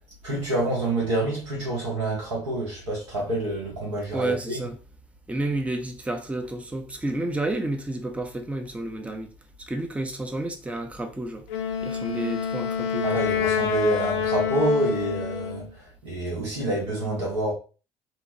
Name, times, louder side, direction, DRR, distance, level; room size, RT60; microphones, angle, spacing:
voice 1, 0.2-4.7 13.0-17.5, right 1 dB, 80° right, 1.2 m, -27 dB
voice 2, 4.1-4.8 5.3-9.3 9.6-11.5 11.8-13.2, right 2 dB, 10° right, 0.6 m, -30 dB
Wind instrument woodwind instrument, 11.5-15.7, left 7 dB, 75° left, 0.4 m, -27 dB
3.0 x 2.2 x 2.7 m
hypercardioid pair, 55°, 15 cm